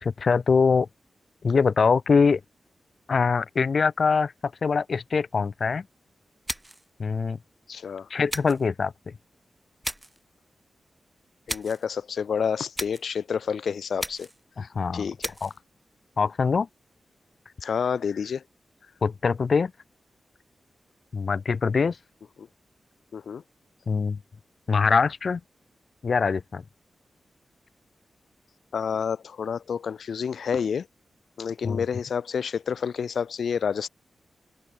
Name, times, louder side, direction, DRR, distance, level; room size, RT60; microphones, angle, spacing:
voice 1, 0.0-0.9 1.4-2.4 3.1-4.3 4.6-5.8 7.0-7.4 8.1-8.9 14.6-15.1 15.4-15.5 16.2-16.7 19.0-19.7 21.1-22.0 23.9-24.2 24.7-25.4 26.0-26.6 31.6-31.8, left 5 dB, 55° left, 3.1 m, -23 dB
sound 1, 6.5-6.9 8.3-8.7 9.8-10.2 11.5-11.9 12.8-13.1 14.0-14.4 15.2-15.6, right 1 dB, 10° right, 2.2 m, -35 dB
voice 2, 7.7-8.1 11.5-14.3 14.9-15.3 17.6-18.4 22.4-22.5 23.1-23.4 28.7-30.9 31.4-33.9, left 6 dB, 85° left, 5.8 m, -29 dB
wide cardioid pair, 150°, 0 cm